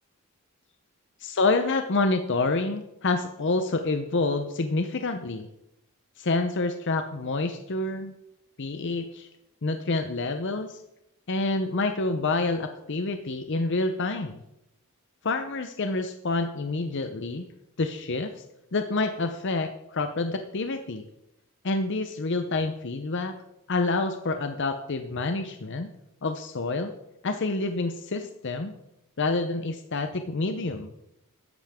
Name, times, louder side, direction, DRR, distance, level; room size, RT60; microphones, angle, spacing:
voice 1, 1.2-5.5 6.2-8.1 8.6-9.3 9.6-10.8 11.3-14.4 15.2-17.5 17.8-18.4 18.7-21.0 21.6-23.4 23.7-25.9 26.2-26.9 27.2-28.7 29.2-30.9, left 3 dB, 55° left, 7 dB, 0.7 m, -28 dB
13.5 x 10.5 x 3.6 m, 0.83 s
head